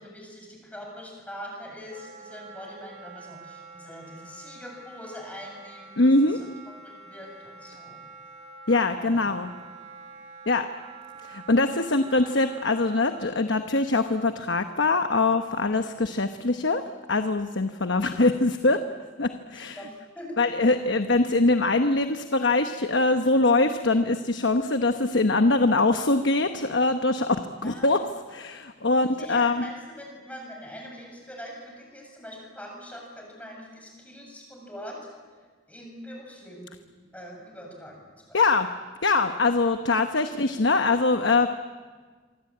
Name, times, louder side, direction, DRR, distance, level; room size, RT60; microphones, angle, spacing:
voice 1, 0.0-6.1 6.8-8.0 8.9-9.2 15.7-15.8 19.5-20.4 27.6-28.0 28.9-35.0 35.7-36.8 37.1-38.4, equal, 5° left, 0 dB, 7.6 m, -43 dB
Wind instrument woodwind instrument, 1.9-13.2, right 4 dB, 35° right, 3.3 m, -46 dB
voice 2, 6.0-6.4 8.7-9.5 10.5-10.7 11.2-16.8 17.1-18.8 19.2-19.8 20.4-27.4 27.6-28.0 28.3-29.7 38.3-38.7 39.0-41.5, left 3 dB, 60° left, 7 dB, 1.1 m, -23 dB
26.5 x 24.5 x 8.7 m, 1.5 s
head